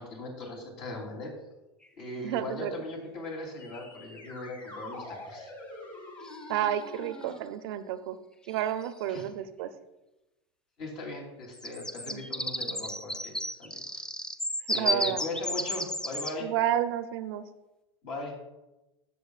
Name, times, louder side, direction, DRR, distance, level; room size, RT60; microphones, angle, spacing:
voice 1, 0.0-1.3 2.0-5.5 9.1-9.3 10.8-14.1 14.7-16.5 18.0-18.4, left 2 dB, 60° left, 0 dB, 3.4 m, -39 dB
sound 1, 1.9-2.0 6.2-6.8 8.5-8.6 8.8-9.2 11.4-16.4, left 1 dB, 5° left, 0.4 m, -33 dB
voice 2, 2.2-2.7 6.5-8.2 8.5-9.7 12.1-12.2 14.7-15.2 16.4-17.4, right 11 dB, 65° right, 11 dB, 0.6 m, -30 dB
sound 2, 3.6-7.4, left 2 dB, 35° left, 2.7 m, -45 dB
15.5 x 6.8 x 2.4 m, 1.0 s
hypercardioid pair, 90°, 14 cm